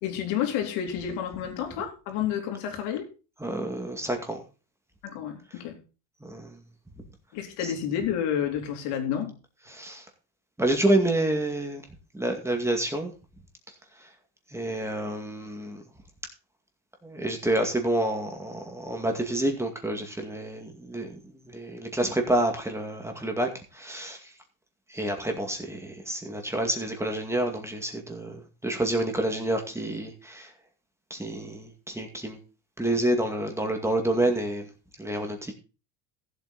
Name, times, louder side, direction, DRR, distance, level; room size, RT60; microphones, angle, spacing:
voice 1, 0.0-3.1 5.0-5.8 7.3-9.4, left 9 dB, 80° left, 3.4 m, -30 dB
voice 2, 3.4-4.4 6.2-6.6 9.7-10.0 10.6-11.8 12.1-13.1 14.5-15.8 17.0-21.2 21.5-23.5 23.7-24.2 24.9-30.5 31.1-32.4 32.8-34.7 35.0-35.5, right 1 dB, 5° right, 2.2 m, -28 dB
14.5 x 8.1 x 4.1 m
cardioid pair, 140°, 41 cm